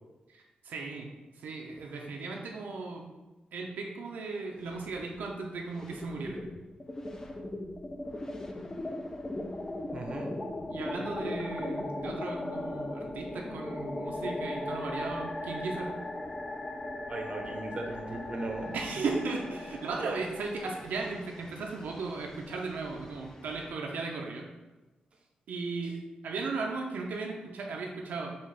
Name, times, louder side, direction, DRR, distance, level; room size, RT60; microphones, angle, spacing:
voice 1, 0.3-1.1 1.3-3.1 3.5-6.5 10.7-16.0 18.7-24.5 25.5-28.4, right 4 dB, 90° right, 0 dB, 0.5 m, -36 dB
sound 1, 4.6-5.4 5.7-23.7, left 2 dB, 20° left, 0.3 m, -39 dB
voice 2, 9.9-10.3 11.0-11.1 17.1-18.8 20.0-20.1, right 2 dB, 40° right, 1 dB, 0.6 m, -37 dB
5.3 x 2.4 x 3.2 m, 1.2 s
wide cardioid pair, 120°, 3 cm